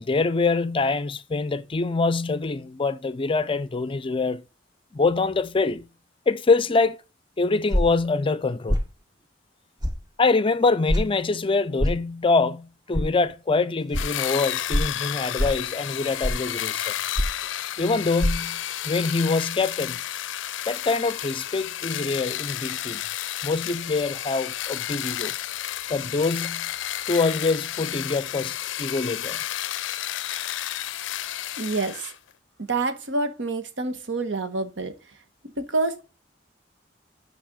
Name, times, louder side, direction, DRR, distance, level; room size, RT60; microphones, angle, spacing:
voice 1, 0.0-4.4 4.9-5.9 6.3-7.0 7.4-8.8 10.2-16.9 17.8-20.0 20.7-23.0 23.4-25.4 25.9-26.7 27.1-29.4, left 3 dB, 30° left, 0.5 m, -24 dB
sound 1, 7.7-8.0 8.7-8.9 9.8-10.0 10.9-11.1 11.8-12.0 12.9-13.1 13.9-14.0 14.7-14.9 15.4-15.6 16.2-16.5 17.2-17.4 18.2-18.3, equal, 20° right, 1.0 m, -23 dB
sound 2, 13.9-32.2, left 12 dB, 85° left, 0.4 m, -31 dB
voice 2, 31.6-32.1 32.6-35.0 35.4-36.0, right 3 dB, 80° right, 1.3 m, -27 dB
8.9 x 5.3 x 3.7 m
head